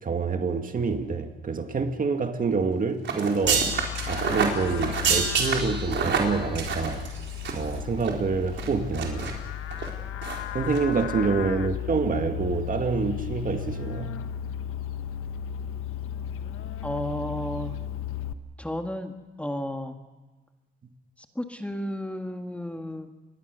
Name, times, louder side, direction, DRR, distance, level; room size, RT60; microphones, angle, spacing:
voice 1, 0.0-3.8 4.1-7.0 7.5-9.3 10.5-14.1, right 4 dB, 40° right, 2.2 m, -27 dB
sound 1, 3.0-7.7 8.0-8.1 8.6-9.3 9.7-9.9 10.2-10.4 10.7-10.8, right 6 dB, 60° right, 4.6 m, -27 dB
Livestock farm animals working animals, 3.4-18.3, left 10 dB, 85° left, 1.4 m, -35 dB
voice 2, 16.8-17.7 18.6-20.0 21.2-23.1, left 1 dB, 5° left, 1.8 m, -33 dB
27.0 x 21.5 x 6.8 m
cardioid pair, 110°, 21 cm